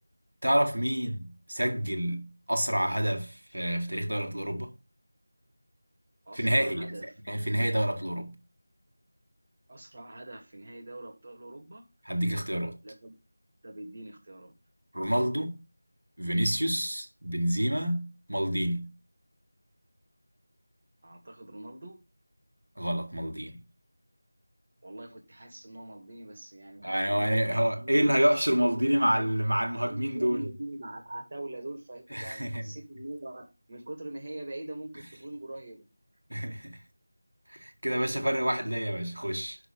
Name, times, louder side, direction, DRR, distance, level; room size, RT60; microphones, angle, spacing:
voice 1, 0.4-4.7 6.3-8.4 12.1-12.8 14.9-15.6 16.2-18.9 22.8-23.6 26.8-30.5 32.1-32.7 36.3-36.8 37.5-39.6, equal, 75° right, 1.8 m, -28 dB
voice 2, 6.3-7.1 7.5-7.7 9.7-11.9 12.8-13.1 13.6-14.5 21.0-22.0 24.8-28.2 28.6-29.3 29.9-35.8, right 1 dB, 35° right, 1.8 m, -42 dB
6.2 x 5.0 x 5.2 m
figure-of-eight pair, 170°, 0 cm